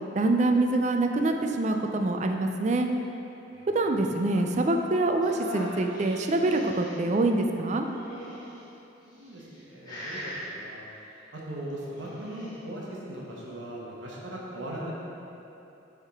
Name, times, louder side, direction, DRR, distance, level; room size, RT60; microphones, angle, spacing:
voice 1, 0.2-2.9 3.7-7.9, right 2 dB, 35° right, 4 dB, 0.4 m, -25 dB
voice 2, 3.5-4.1 9.1-10.8 11.3-14.9, right 1 dB, 80° right, -4 dB, 1.0 m, -39 dB
sound 1, 5.2-7.0 7.8-8.6 9.3-9.6 9.8-10.5 11.8-12.5, equal, 20° left, 1.2 m, -40 dB
9.6 x 3.6 x 3.6 m, 2.9 s
head